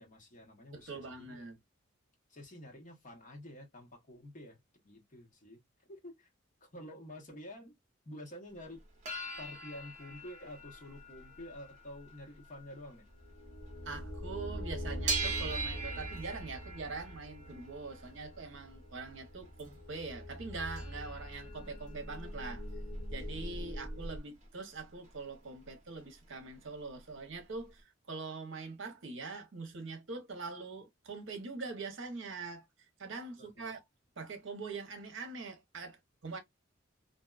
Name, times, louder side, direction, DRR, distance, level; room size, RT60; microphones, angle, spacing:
voice 1, 0.0-1.4 2.3-4.6 4.8-5.6 5.9-6.3 6.6-7.7 8.0-8.8 9.4-13.0 23.5-23.8 33.4-33.7, left 1 dB, 40° left, 0.9 m, -49 dB
voice 2, 0.7-1.6 13.9-22.6 23.1-32.7 33.0-33.8 34.2-36.4, right 4 dB, 70° right, 0.7 m, -43 dB
sound 1, 8.8-14.0 14.3-19.8 20.3-20.4 20.5-24.5 24.8-25.7 26.0-26.1 26.3-27.4 27.8-27.9, right 3 dB, 35° right, 0.8 m, -43 dB
sound 2, 13.1-24.2, equal, 80° left, 0.8 m, -43 dB
2.6 x 2.2 x 2.3 m
head